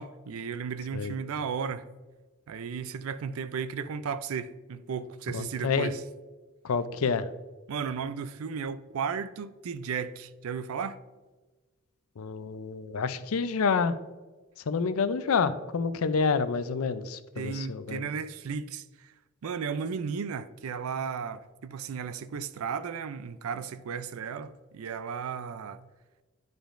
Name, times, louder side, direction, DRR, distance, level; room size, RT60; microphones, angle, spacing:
voice 1, 0.0-1.9 2.5-6.0 7.7-11.0 17.4-19.1 19.4-25.9, right 6 dB, 80° right, 0.4 m, -35 dB
voice 2, 5.3-5.9 6.6-7.3 12.2-13.9 14.7-18.0, left 5 dB, 80° left, 0.5 m, -28 dB
10.5 x 5.0 x 2.5 m
head